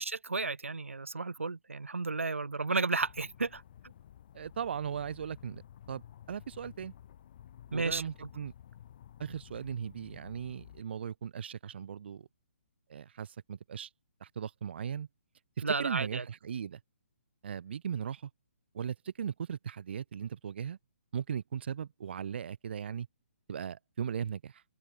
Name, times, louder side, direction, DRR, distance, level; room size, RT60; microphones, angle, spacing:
voice 1, 0.0-3.6 7.7-8.0 15.6-16.2, right 3 dB, 75° right, 2.9 m, -32 dB
sound 1, 3.0-10.8, left 10 dB, 45° left, 3.2 m, -53 dB
voice 2, 4.3-5.6 5.9-6.9 7.7-8.5 9.2-12.3 12.9-13.9 14.2-15.1 15.6-16.8 17.4-18.3 18.7-20.8 21.1-23.1 23.5-24.6, right 8 dB, 50° right, 2.2 m, -38 dB
open air
figure-of-eight pair, 135°, 7 cm